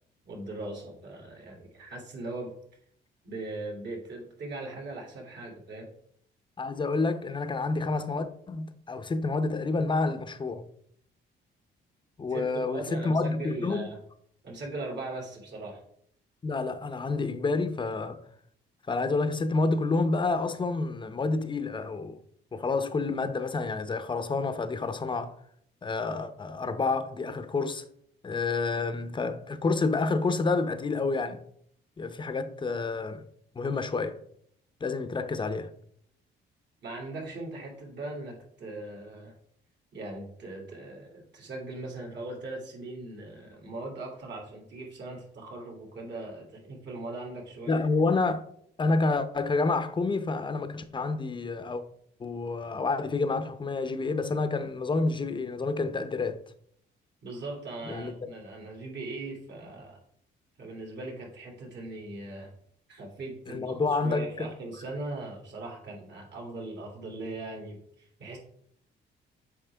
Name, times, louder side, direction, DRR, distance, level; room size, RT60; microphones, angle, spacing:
voice 1, 0.2-2.5 3.2-5.9 12.3-14.0 14.4-15.8 36.8-39.3 39.9-47.8 57.2-60.0 60.6-62.5 62.9-68.4, right 2 dB, 60° right, 2.6 m, -39 dB
voice 2, 6.6-10.7 12.2-13.9 16.4-18.2 18.9-22.2 22.5-25.3 25.8-27.8 28.2-31.4 32.0-33.2 33.6-34.2 34.8-35.7 47.7-48.4 48.8-51.8 52.2-56.4 57.9-58.1 63.5-64.5, left 3 dB, 25° left, 0.6 m, -29 dB
7.4 x 4.9 x 3.4 m
cardioid pair, 90°, 20 cm